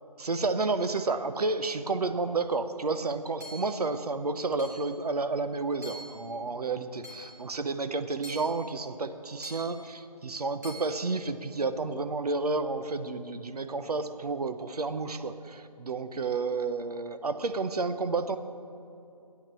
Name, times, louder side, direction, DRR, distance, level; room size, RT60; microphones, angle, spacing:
voice 1, 0.2-18.4, right 3 dB, 70° right, 10 dB, 0.8 m, -31 dB
Hammer / Chink clink, 3.4-3.8 4.6-5.0 5.8-6.2 7.0-7.4 8.2-8.7 9.4-9.8 10.6-10.9, equal, 25° right, 2.3 m, -45 dB
9.2 x 8.7 x 7.4 m, 2.7 s
figure-of-eight pair, 175°, 21 cm